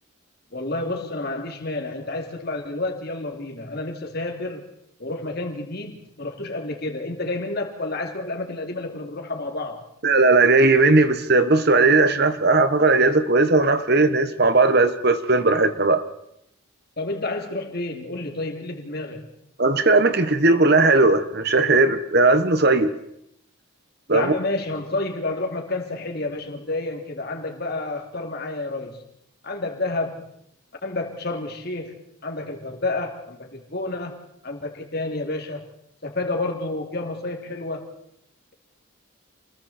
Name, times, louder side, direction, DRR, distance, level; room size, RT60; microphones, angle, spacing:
voice 1, 0.5-4.7 5.0-9.8 17.0-19.3 24.1-29.0 29.4-30.3 30.8-35.6 36.0-37.9, left 2 dB, 50° left, 2 dB, 3.1 m, -30 dB
voice 2, 10.0-16.0 19.6-22.9 24.1-24.3, right 3 dB, 50° right, 10 dB, 1.4 m, -17 dB
29.0 x 21.5 x 4.5 m, 0.75 s
head